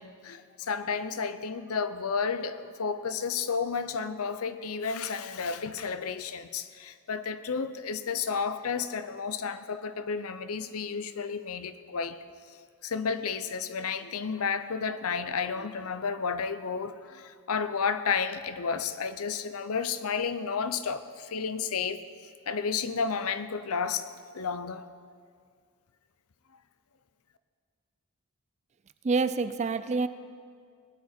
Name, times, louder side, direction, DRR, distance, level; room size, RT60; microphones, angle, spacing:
voice 1, 0.0-12.2 12.8-22.0 22.5-24.1 24.3-24.8, left 5 dB, 80° left, 12 dB, 0.6 m, -32 dB
voice 2, 29.0-30.1, right 4 dB, 30° right, 12 dB, 0.4 m, -27 dB
19.0 x 9.6 x 4.4 m, 2.1 s
head